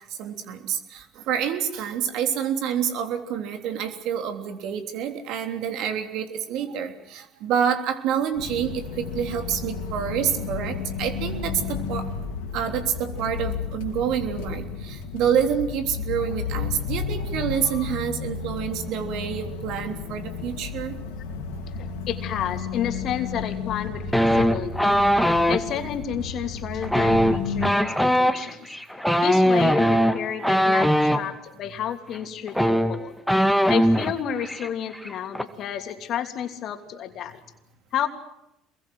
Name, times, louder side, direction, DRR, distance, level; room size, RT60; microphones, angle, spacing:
voice 1, 0.2-12.1 12.5-20.9, right 8 dB, 65° right, 5 dB, 3.3 m, -27 dB
sound 1, 8.3-27.7, left 5 dB, 80° left, 3.3 m, -32 dB
voice 2, 21.8-25.0 25.5-28.7 29.2-33.1 33.7-37.4 37.9-38.1, left 9 dB, 55° left, 6 dB, 3.0 m, -31 dB
sound 2, 24.1-25.6 26.8-31.2 32.1-32.2 32.5-34.1 34.4-34.7 34.9-35.4, equal, ahead, 2.1 m, -20 dB
27.0 x 22.0 x 7.9 m, 0.84 s
hypercardioid pair, 70°, 0 cm